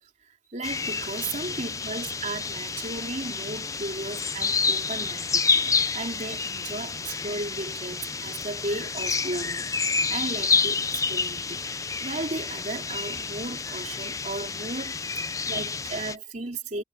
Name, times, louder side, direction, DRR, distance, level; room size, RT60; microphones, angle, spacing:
voice 1, 0.0-5.6 5.9-16.8, right 2 dB, 45° right, 3.1 m, -35 dB
sound 1, 0.6-16.2, left 4 dB, 20° left, 0.6 m, -29 dB
head